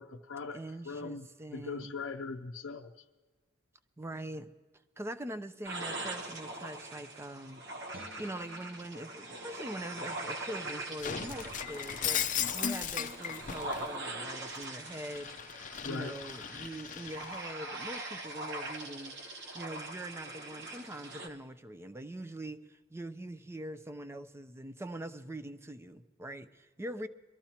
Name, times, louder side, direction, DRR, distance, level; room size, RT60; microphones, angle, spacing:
voice 1, 0.0-0.6 0.8-2.9 15.8-16.1, left 4 dB, 90° left, 3 dB, 0.5 m, -40 dB
voice 2, 0.5-1.9 4.0-4.5 5.0-7.6 8.2-15.3 15.8-19.2 19.5-27.1, right 1 dB, 15° right, 10 dB, 0.4 m, -43 dB
sound 1, 5.6-21.3, right 2 dB, 65° right, 1.1 m, -42 dB
Guitar, 7.9-11.1 11.5-11.6, right 1 dB, 90° right, 1.1 m, -58 dB
Shatter, 11.0-13.9 14.3-17.4, left 9 dB, 40° left, 0.5 m, -37 dB
23.0 x 13.5 x 2.9 m, 1.3 s
head